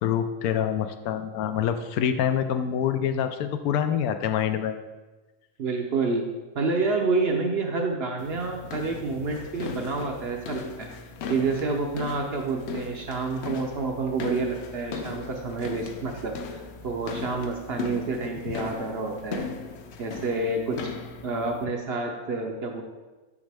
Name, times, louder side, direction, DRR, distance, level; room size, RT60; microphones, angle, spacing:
voice 1, 0.0-4.7 18.5-18.6, left 9 dB, 85° left, 9 dB, 1.1 m, -26 dB
voice 2, 5.6-6.3 6.5-10.9 11.3-19.4 20.0-20.9 21.2-22.8, right 3 dB, 55° right, 2 dB, 0.7 m, -28 dB
sound 1, 8.2-21.6, left 5 dB, 60° left, 0.8 m, -38 dB
7.2 x 6.3 x 3.4 m, 1.2 s
omnidirectional pair, 1.5 m